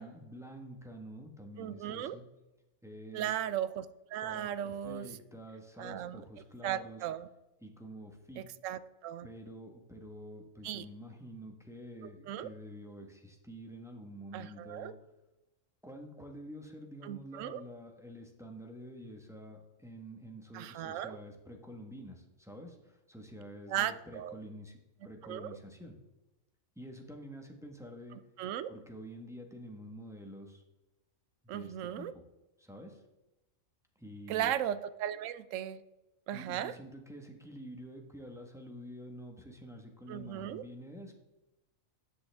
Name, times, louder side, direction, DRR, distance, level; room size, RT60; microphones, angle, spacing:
voice 1, 0.0-2.2 2.8-3.4 4.2-7.0 7.6-8.5 9.2-14.9 15.8-26.0 26.7-28.2 28.7-30.6 31.4-32.2 32.6-33.0 33.9-34.5 36.3-41.1, equal, ahead, 2 dB, 1.2 m, -48 dB
voice 2, 1.6-2.2 3.1-5.1 5.8-6.2 6.6-7.3 8.4-9.3 10.6-10.8 12.3-12.5 14.3-14.9 17.0-17.6 20.5-21.2 23.7-24.3 25.2-25.6 28.4-28.7 31.5-32.1 34.3-35.8 36.3-36.7 40.1-40.6, right 11 dB, 75° right, 15 dB, 0.9 m, -36 dB
13.5 x 7.8 x 3.5 m, 1.0 s
omnidirectional pair, 1.4 m